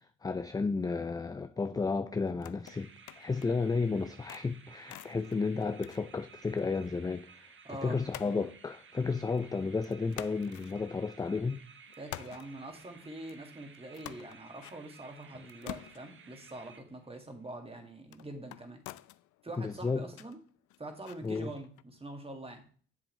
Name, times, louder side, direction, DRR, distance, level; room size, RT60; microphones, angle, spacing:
voice 1, 0.2-2.9 3.2-7.5 7.8-11.6 19.6-20.1 21.2-21.5, left 4 dB, 15° left, 0.4 m, -32 dB
sound 1, 2.2-3.7 4.0-6.9 7.1-7.2 8.1-9.5 9.8-11.5 11.9-21.8, left 15 dB, 80° left, 0.5 m, -50 dB
sound 2, 2.7-17.3, right 5 dB, 40° right, 1.1 m, -56 dB
voice 2, 7.6-8.0 12.0-18.8 19.4-20.4 20.8-22.6, right 1 dB, 20° right, 1.9 m, -44 dB
7.5 x 7.4 x 3.2 m
cardioid pair, 90°, 30 cm